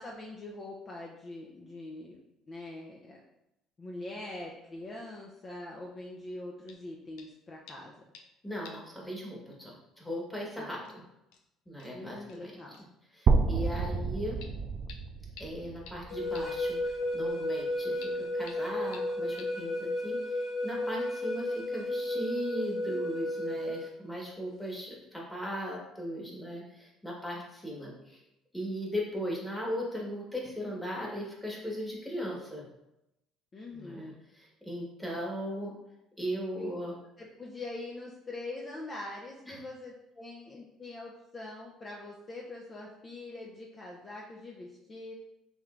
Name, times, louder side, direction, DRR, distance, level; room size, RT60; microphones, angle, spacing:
voice 1, 0.0-2.2 2.5-3.2 3.8-8.0 10.5-10.8 11.9-12.8 33.5-34.2 36.5-36.7 37.2-45.1, left 2 dB, 30° left, -2 dB, 0.6 m, -43 dB
sound 1, 6.7-6.9 7.2-7.4 7.7-8.4 8.6-8.9 9.2-9.3 10.4-10.5 10.8-10.9 11.3-11.4 11.8-11.9 12.3-12.4 12.7-12.9 14.4-14.5 14.9-15.0 15.4-15.5 15.9-16.0 16.3-16.4 18.0-18.1 18.5-18.6 18.9-19.0 19.4-19.5, left 6 dB, 85° left, 0.5 m, -50 dB
voice 2, 8.4-11.0 11.7-12.5 13.1-14.4 15.4-28.2 28.5-32.6 33.7-35.7 36.2-36.9 39.4-39.6, equal, 5° left, -3 dB, 1.4 m, -38 dB
sound 2, 13.3-17.2, right 4 dB, 45° right, 0.3 m, -30 dB
sound 3, 16.1-23.9, left 1 dB, 55° left, 1.0 m, -33 dB
5.2 x 3.2 x 2.5 m, 0.86 s
cardioid pair, 100°, 0 cm